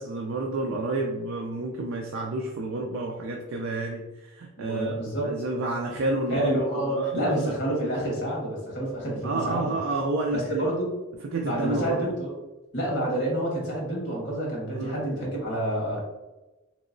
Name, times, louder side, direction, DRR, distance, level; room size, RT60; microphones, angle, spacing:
voice 1, 0.0-4.9 5.2-6.5 6.8-7.5 9.2-10.7 11.3-12.1 14.7-15.0, right 2 dB, 85° right, 1 dB, 0.4 m, -30 dB
voice 2, 4.6-5.3 6.3-9.8 10.3-10.9 11.4-12.4 12.7-16.0, right 1 dB, 60° left, -2 dB, 1.4 m, -28 dB
3.0 x 2.9 x 2.5 m, 1.1 s
head